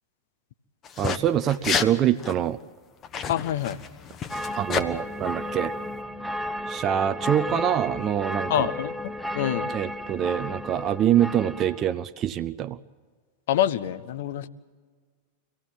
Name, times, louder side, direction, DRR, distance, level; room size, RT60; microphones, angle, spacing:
sound 1, 0.8-1.2 1.5-1.9 2.2-2.3 3.0-4.9, left 7 dB, 30° left, 1.0 m, -29 dB
voice 1, 1.0-2.6 4.5-5.7 6.7-8.7 9.7-12.8, right 10 dB, 30° right, 10 dB, 0.6 m, -25 dB
voice 2, 3.3-3.8 8.5-8.9 9.3-9.7 13.5-14.5, left 11 dB, 55° left, 15 dB, 0.8 m, -26 dB
sound 2, 4.3-11.9, left 1 dB, ahead, 0.8 m, -33 dB
25.0 x 16.5 x 7.8 m, 1.5 s
figure-of-eight pair, 90°, 0 cm